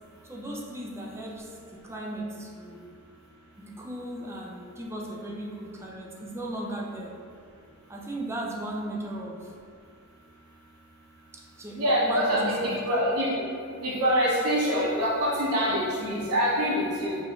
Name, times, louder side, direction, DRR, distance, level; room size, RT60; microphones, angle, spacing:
voice 1, 0.2-2.8 3.6-7.1 7.9-9.5 11.3-12.7 16.0-16.2, right 1 dB, 10° right, -2 dB, 0.4 m, -36 dB
voice 2, 11.7-13.4 13.8-17.2, equal, 90° right, -7 dB, 0.7 m, -25 dB
4.8 x 2.5 x 3.0 m, 2.4 s
head